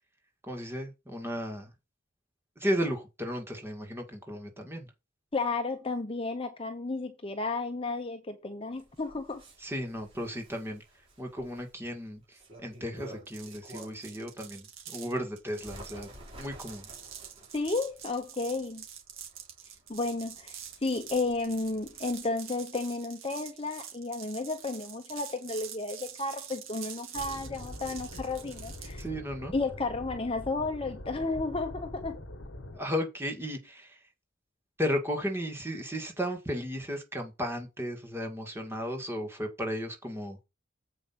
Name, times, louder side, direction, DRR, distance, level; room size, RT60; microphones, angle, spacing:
voice 1, 0.4-1.7 2.6-4.9 9.6-10.8 11.2-14.7 14.9-16.1 16.4-16.9 29.0-29.5 32.7-34.0 34.8-40.4, equal, 10° right, 2.1 m, -34 dB
voice 2, 5.3-9.4 17.5-18.8 19.9-29.0 29.5-32.2, left 3 dB, 25° left, 0.8 m, -33 dB
Bird, 8.7-14.2 14.6-22.3, right 1 dB, 30° right, 4.5 m, -52 dB
sound 1, 13.3-29.1, right 8 dB, 85° right, 2.3 m, -46 dB
sound 2, 27.1-32.8, left 1 dB, 60° left, 1.3 m, -43 dB
7.9 x 5.1 x 5.8 m
head